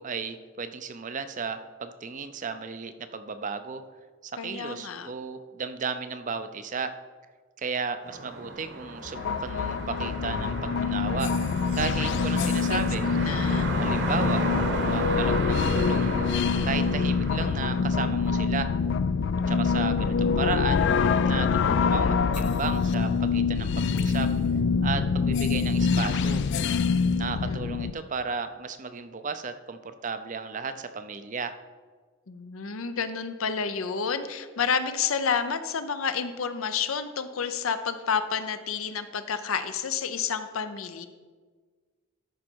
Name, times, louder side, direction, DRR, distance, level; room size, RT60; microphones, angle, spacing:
voice 1, 0.0-3.8 4.2-7.0 7.6-11.3 11.7-13.1 13.8-14.4 14.9-18.7 19.5-20.9 21.2-24.3 24.8-26.4 27.2-31.6, right 5 dB, 35° right, 10 dB, 0.5 m, -34 dB
voice 2, 4.4-5.1 12.4-12.8 13.2-13.7 27.3-27.7 32.3-41.1, left 6 dB, 75° left, 10 dB, 0.7 m, -30 dB
sound 1, 8.0-18.3, right 2 dB, 55° right, 1.1 m, -34 dB
sound 2, 9.1-27.9, left 5 dB, 55° left, 0.3 m, -25 dB
13.0 x 5.3 x 4.6 m, 1.4 s
head